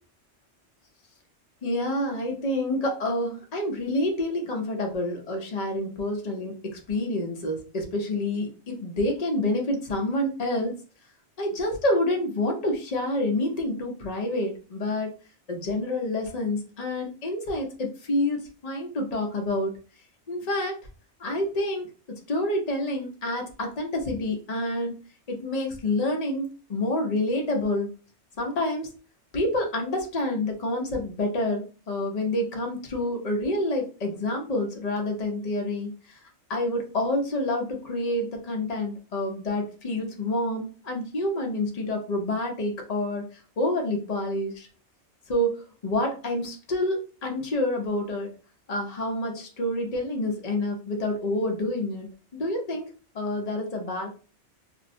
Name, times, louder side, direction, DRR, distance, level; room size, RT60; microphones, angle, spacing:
voice 1, 1.6-10.8 11.4-15.1 15.5-19.7 20.3-20.8 21.2-25.0 25.3-27.9 28.4-28.9 29.3-36.2 36.5-43.2 43.6-44.7 45.3-48.3 48.7-52.1 52.3-52.8 53.1-54.1, left 1 dB, 45° left, 2 dB, 0.6 m, -28 dB
2.4 x 2.0 x 2.6 m, 0.36 s
omnidirectional pair, 1.2 m